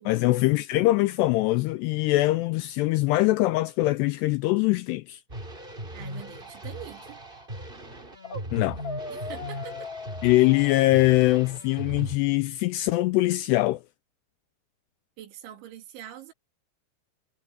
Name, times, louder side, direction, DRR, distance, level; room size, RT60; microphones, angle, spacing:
voice 1, 0.1-5.2 8.5-8.8 10.2-13.8, left 18 dB, 85° left, 2.4 m, -22 dB
sound 1, 5.3-12.2, right 1 dB, 15° right, 3.0 m, -39 dB
voice 2, 5.9-7.2 9.1-9.9 15.2-16.3, right 10 dB, 80° right, 5.1 m, -44 dB
sound 2, 8.2-8.5 8.8-11.6, left 3 dB, 25° left, 4.1 m, -40 dB
omnidirectional pair, 5.3 m